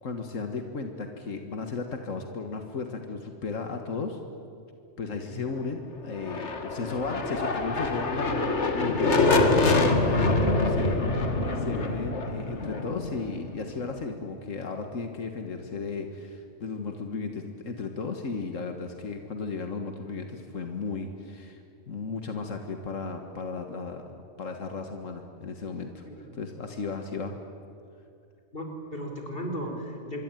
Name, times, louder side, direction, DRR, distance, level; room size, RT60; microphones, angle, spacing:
voice 1, 0.0-4.2 5.0-21.6 21.9-24.1 24.4-26.0 26.3-27.3, left 4 dB, 90° left, 5 dB, 2.0 m, -35 dB
sound 1, 6.1-13.9, left 2 dB, 65° left, 2.2 m, -25 dB
voice 2, 28.5-30.2, equal, 45° left, 2 dB, 4.7 m, -36 dB
26.0 x 23.0 x 9.2 m, 2.6 s
omnidirectional pair, 1.3 m